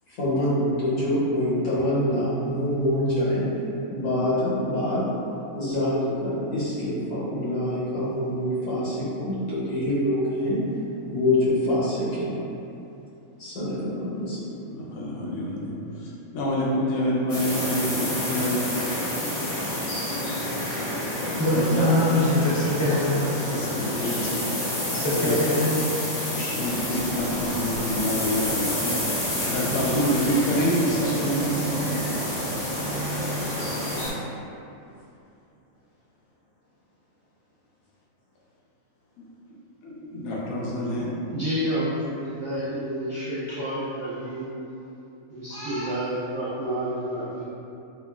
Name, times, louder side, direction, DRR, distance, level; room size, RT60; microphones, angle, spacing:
voice 1, 0.1-3.4 3.9-5.1 5.5-10.6 11.1-12.4 13.4-14.4, left 1 dB, 85° left, -10 dB, 1.5 m, -25 dB
voice 2, 14.7-15.8 16.3-18.6 21.2-21.8 23.5-24.8 25.2-25.3 26.3-32.0 39.8-41.1, equal, 70° left, -5 dB, 1.0 m, -27 dB
sound 1, 17.3-34.1, left 1 dB, 50° left, 0.9 m, -29 dB
voice 3, 21.3-23.5 24.9-25.9 29.6-29.7, left 1 dB, 25° left, -12 dB, 0.5 m, -23 dB
sound 2, 26.6-34.1, right 3 dB, 70° right, 0.9 m, -36 dB
voice 4, 41.3-44.4 45.3-47.4, right 1 dB, 40° right, -16 dB, 0.8 m, -29 dB
2.9 x 2.3 x 2.3 m, 2.8 s
omnidirectional pair, 1.6 m